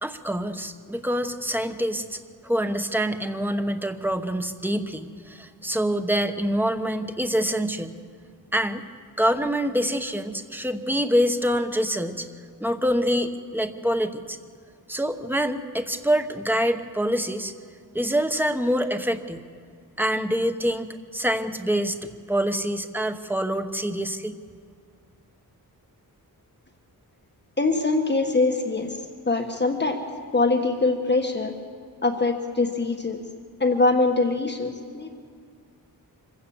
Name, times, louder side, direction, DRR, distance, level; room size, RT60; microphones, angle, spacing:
voice 1, 0.0-7.9 8.5-8.8 9.2-12.3 12.6-14.4 14.9-17.5 17.9-19.4 20.0-24.4, equal, 5° right, 7 dB, 1.0 m, -26 dB
voice 2, 27.6-29.0 29.3-30.0 30.3-31.5 32.0-33.2 33.6-35.2, left 3 dB, 30° left, 4 dB, 1.4 m, -23 dB
25.5 x 16.0 x 7.1 m, 2.1 s
wide cardioid pair, 135°, 36 cm